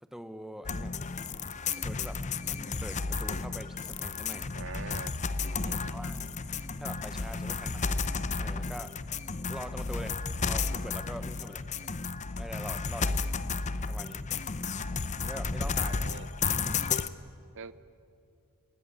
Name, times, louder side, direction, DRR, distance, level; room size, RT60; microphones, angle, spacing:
voice 1, 0.0-1.0 1.7-4.5 5.6-6.3 6.8-7.8 8.4-9.0 9.5-10.2 10.5-11.6 12.4-13.2 13.9-14.3 15.2-16.0 16.5-16.9, equal, ahead, 10 dB, 0.8 m, -44 dB
sound 1, 0.6-17.1, left 4 dB, 30° left, 0.7 m, -33 dB
voice 2, 4.5-5.2 5.6-6.0 15.7-16.3 17.5-17.7, right 5 dB, 60° right, 15 dB, 0.7 m, -44 dB
29.0 x 17.5 x 9.8 m, 2.6 s
head